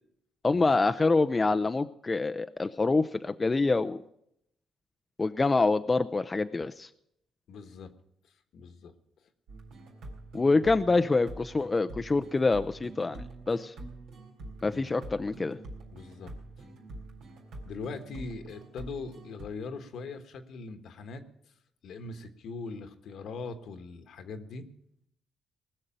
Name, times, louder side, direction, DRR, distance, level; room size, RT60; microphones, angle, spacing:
voice 1, 0.4-4.0 5.2-6.9 10.3-13.2 13.5-13.7 14.6-15.6, left 3 dB, 25° left, 9 dB, 0.5 m, -26 dB
voice 2, 7.5-7.9 8.5-8.9 10.5-10.6 14.7-14.9 15.9-16.3 17.6-21.2 21.8-24.7, left 4 dB, 70° left, 8 dB, 1.4 m, -41 dB
sound 1, 9.5-19.5, right 2 dB, 85° right, 4.1 m, -45 dB
20.0 x 6.6 x 8.9 m, 0.75 s
cardioid pair, 90°, 0 cm